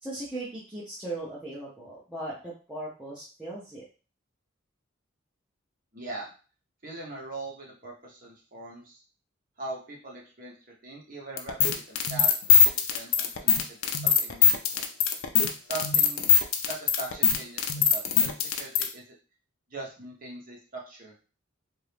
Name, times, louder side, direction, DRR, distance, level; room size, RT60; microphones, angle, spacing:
voice 1, 0.0-3.8, right 2 dB, 5° right, -9 dB, 0.7 m, -38 dB
voice 2, 5.9-6.3 6.8-9.0 9.6-10.5 10.8-14.9 15.7-16.3 16.7-19.0 19.7-21.1, right 2 dB, 40° right, -1 dB, 0.9 m, -41 dB
sound 1, 11.4-18.9, left 7 dB, 80° left, 0.5 m, -21 dB
2.8 x 2.5 x 3.3 m, 0.35 s
head